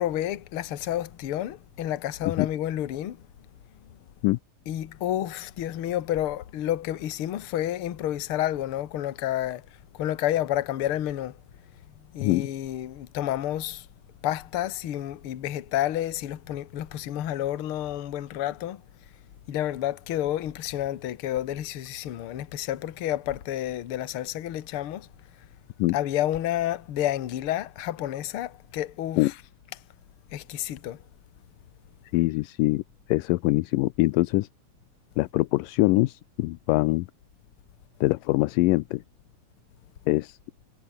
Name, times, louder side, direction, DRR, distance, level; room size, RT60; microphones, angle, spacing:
voice 1, 0.0-3.2 4.6-9.6 9.9-11.4 12.1-13.9 14.2-18.8 19.5-25.1 25.9-29.3 29.7-29.8 30.3-31.0, left 12 dB, 55° left, 1.7 m, -30 dB
voice 2, 32.1-32.8 33.1-34.5 35.2-37.1 38.0-39.0 40.1-40.4, left 20 dB, 85° left, 2.3 m, -23 dB
omnidirectional pair, 3.9 m